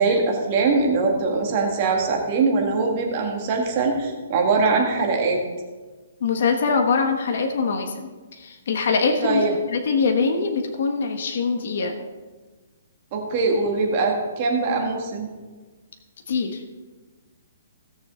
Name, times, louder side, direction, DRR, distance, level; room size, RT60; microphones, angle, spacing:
voice 1, 0.0-5.4 9.2-9.5 13.1-15.3, right 3 dB, 30° right, 1 dB, 1.9 m, -22 dB
voice 2, 6.2-8.1 8.4-9.4 9.7-11.9 16.3-16.5, left 4 dB, 55° left, 4 dB, 1.3 m, -23 dB
17.0 x 6.7 x 3.8 m, 1.3 s
hypercardioid pair, 165°, 0 cm